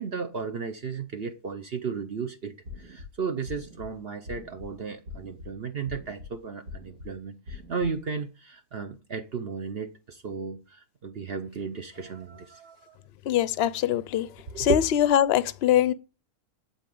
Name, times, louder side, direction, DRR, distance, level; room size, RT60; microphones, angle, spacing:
voice 1, 0.0-13.0 14.5-14.8, right 5 dB, 50° right, 0.9 m, -34 dB
sound 1, 2.6-3.1 3.5-3.9 4.3-4.7 5.1-5.5 5.9-6.3 6.7-7.1 7.5-7.9, left 4 dB, 90° right, 2.7 m, -42 dB
voice 2, 13.3-14.3 14.6-15.9, left 11 dB, 60° left, 0.7 m, -23 dB
11.5 x 4.3 x 7.6 m
omnidirectional pair, 1.6 m